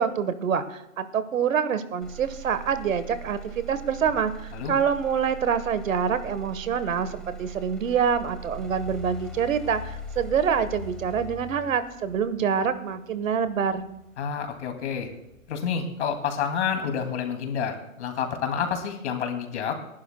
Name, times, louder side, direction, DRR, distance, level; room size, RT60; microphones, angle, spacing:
voice 1, 0.0-13.9, right 7 dB, 75° right, 12 dB, 1.3 m, -26 dB
Motor vehicle (road), 2.0-16.0 16.5-17.0, right 1 dB, ahead, 0.8 m, -41 dB
voice 2, 14.2-15.1 15.5-19.8, left 7 dB, 55° left, 5 dB, 2.5 m, -29 dB
28.0 x 11.5 x 2.2 m, 0.85 s
hypercardioid pair, 150°, 40 cm